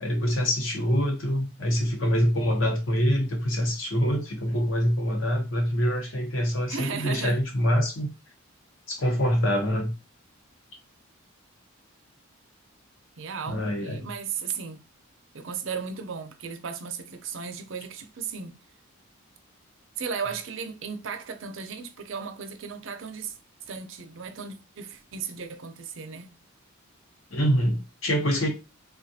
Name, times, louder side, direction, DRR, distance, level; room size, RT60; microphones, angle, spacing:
voice 1, 0.0-8.1 8.9-9.9 13.5-14.1 27.3-28.5, equal, 65° left, 0.9 m, -25 dB
voice 2, 6.7-7.4 13.2-14.8 15.3-18.6 20.0-23.4 23.7-26.4, right 6 dB, 60° right, 0.5 m, -35 dB
3.5 x 2.4 x 2.7 m
head